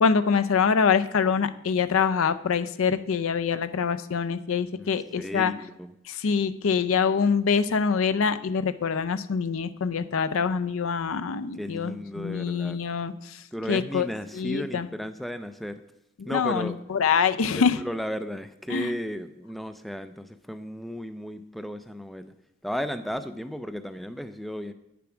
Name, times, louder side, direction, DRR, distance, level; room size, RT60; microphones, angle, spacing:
voice 1, 0.0-5.5 6.1-13.4 13.7-14.1 14.3-14.9 16.3-17.8 18.7-19.0, left 6 dB, 65° left, 13 dB, 0.5 m, -25 dB
voice 2, 4.7-5.9 11.5-12.8 13.5-15.8 16.2-16.8 17.8-22.3 22.6-24.7, equal, ahead, 10 dB, 0.3 m, -34 dB
8.7 x 6.9 x 5.9 m, 0.85 s
head